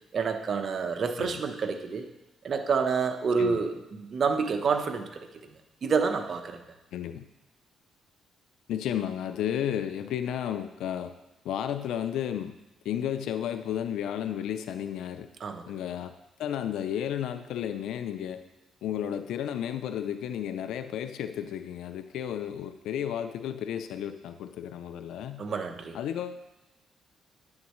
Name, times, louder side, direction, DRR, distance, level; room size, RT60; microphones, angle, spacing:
voice 1, 0.1-2.1 2.4-5.1 5.8-6.6 15.4-15.7 25.4-26.0, right 5 dB, 50° right, 5 dB, 0.9 m, -28 dB
voice 2, 6.9-7.2 8.7-11.1 11.4-12.5 12.8-15.3 15.7-16.1 16.4-18.4 18.8-25.4 25.9-26.4, left 10 dB, 80° left, 10 dB, 0.4 m, -33 dB
9.7 x 9.6 x 3.1 m, 0.97 s
cardioid pair, 90°, 0 cm